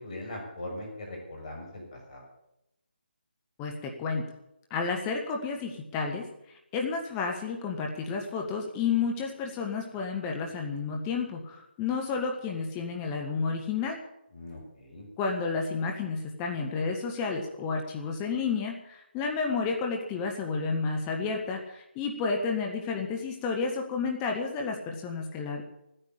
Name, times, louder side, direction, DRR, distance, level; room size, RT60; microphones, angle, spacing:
voice 1, 0.0-1.8 2.1-2.2 14.3-15.1, left 1 dB, 40° left, 0 dB, 6.4 m, -40 dB
voice 2, 3.6-4.2 4.7-6.3 6.7-14.0 15.2-25.6, left 5 dB, 15° left, 2 dB, 1.3 m, -31 dB
15.5 x 10.0 x 8.5 m, 0.85 s
figure-of-eight pair, 150°, 6 cm